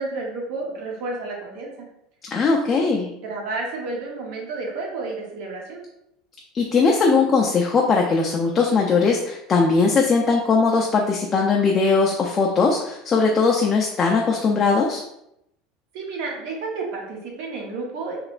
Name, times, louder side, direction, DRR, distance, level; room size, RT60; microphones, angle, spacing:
voice 1, 0.0-1.9 2.7-2.8 3.2-5.8 15.9-18.2, right 3 dB, 65° right, -1 dB, 0.9 m, -31 dB
voice 2, 2.2-3.1 6.5-15.0, left 4 dB, 25° left, -1 dB, 0.3 m, -19 dB
3.2 x 2.9 x 2.4 m, 0.81 s
cardioid pair, 150°, 0 cm